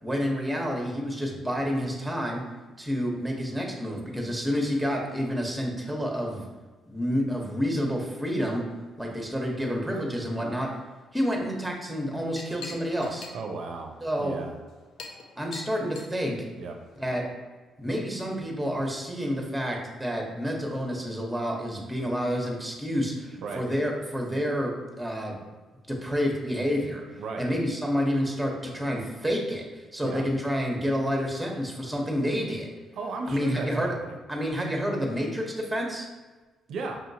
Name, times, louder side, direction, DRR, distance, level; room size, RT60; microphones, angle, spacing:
voice 1, 0.0-2.4 2.8-6.4 6.8-8.6 9.0-10.7 11.1-13.3 14.0-14.4 15.4-16.4 17.0-17.2 17.8-24.7 25.0-25.4 25.9-32.7 33.3-33.9 34.3-36.1, equal, 5° right, 0 dB, 0.9 m, -29 dB
Chink clink, 11.9-17.2, left 4 dB, 75° left, 0.5 m, -46 dB
voice 2, 13.3-13.9 14.2-14.5 16.6-16.8 23.4-23.6 27.2-27.5 30.0-30.2 33.0-34.2 36.7-37.0, right 3 dB, 70° right, 3 dB, 0.5 m, -35 dB
5.3 x 2.8 x 2.7 m, 1.3 s
cardioid pair, 90°, 0 cm